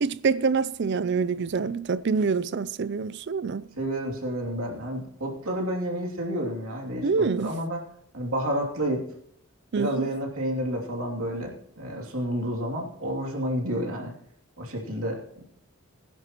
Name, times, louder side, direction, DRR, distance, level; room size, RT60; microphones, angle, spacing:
voice 1, 0.0-3.7 7.0-7.5 9.7-10.1, right 5 dB, 50° right, 0.4 m, -26 dB
voice 2, 3.8-7.8 8.1-9.0 9.7-14.1 14.6-15.2, equal, 75° right, 2.8 m, -30 dB
20.5 x 10.5 x 3.0 m
head